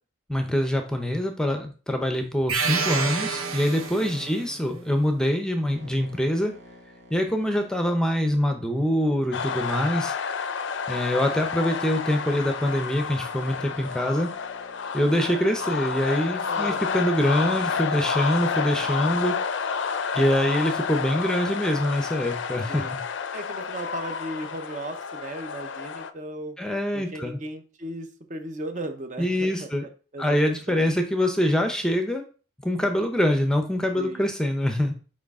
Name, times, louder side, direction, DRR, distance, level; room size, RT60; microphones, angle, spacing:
voice 1, 0.3-6.5 7.1-10.1 10.9-14.3 14.9-19.3 20.1-23.0 26.6-27.4 29.2-29.9 30.2-32.2 32.6-35.0, equal, 5° left, 5 dB, 0.6 m, -24 dB
sound 1, 2.5-4.4, right 5 dB, 90° right, 0.9 m, -28 dB
sound 2, 2.7-10.1 10.7-19.3, left 1 dB, 70° right, 1.7 m, -51 dB
voice 2, 4.0-4.9 16.4-16.8 22.7-22.9 23.3-26.6 26.9-29.7 30.1-30.9 33.9-34.2, right 1 dB, 35° right, 7 dB, 0.7 m, -37 dB
sound 3, 9.3-26.1, left 6 dB, 65° left, 0.5 m, -30 dB
6.4 x 4.8 x 3.6 m, 0.36 s
head